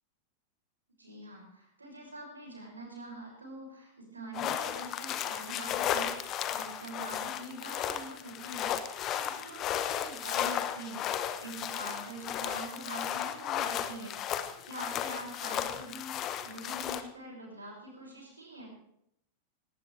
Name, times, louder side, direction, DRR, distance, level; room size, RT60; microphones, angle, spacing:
voice 1, 1.0-14.4 14.6-18.7, right 1 dB, 80° right, -1 dB, 6.3 m, -45 dB
sound 1, 4.3-17.0, left 10 dB, 35° left, 1.2 m, -34 dB
18.5 x 18.5 x 3.4 m, 0.75 s
figure-of-eight pair, 90°, 0 cm